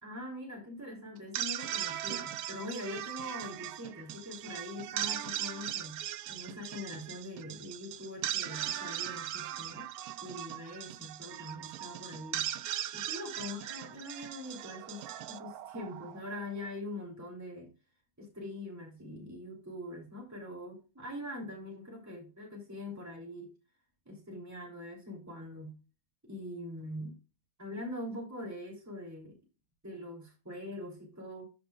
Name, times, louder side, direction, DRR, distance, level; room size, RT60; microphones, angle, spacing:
voice 1, 0.0-9.9 10.2-12.5 12.9-17.7 18.2-23.5 24.0-25.8 26.2-27.2 27.6-29.4 29.8-31.4, left 1 dB, 10° right, 3.1 m, -43 dB
sound 1, 1.2-16.4, right 11 dB, 75° right, 1.1 m, -39 dB
13.5 x 5.5 x 2.4 m
omnidirectional pair, 1.6 m